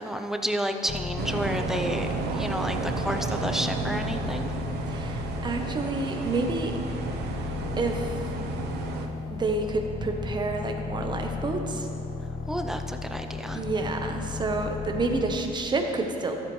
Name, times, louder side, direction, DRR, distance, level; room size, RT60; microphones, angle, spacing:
voice 1, 0.0-4.5 12.5-13.6, equal, ahead, 5 dB, 0.6 m, -31 dB
sound 1, 0.9-15.6, left 4 dB, 45° left, 0.7 m, -35 dB
sound 2, 1.2-9.1, right 4 dB, 80° right, 0.9 m, -32 dB
voice 2, 4.9-6.7 7.8-8.2 9.3-11.9 13.5-16.4, right 3 dB, 25° right, 4 dB, 1.0 m, -29 dB
14.0 x 8.0 x 3.2 m, 2.7 s
cardioid pair, 110°, 17 cm